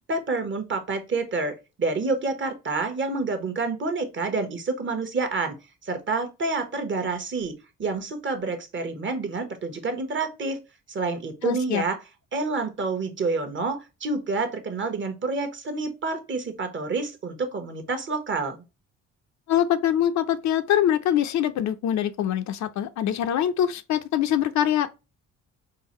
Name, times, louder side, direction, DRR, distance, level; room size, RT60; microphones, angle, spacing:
voice 1, 0.1-5.6 5.8-7.5 7.8-10.6 10.9-12.0 12.3-18.6, right 3 dB, 40° right, 0.9 m, -28 dB
voice 2, 11.4-11.8 19.5-24.9, left 10 dB, 70° left, 0.5 m, -24 dB
3.8 x 2.5 x 2.9 m
cardioid pair, 90°, 30 cm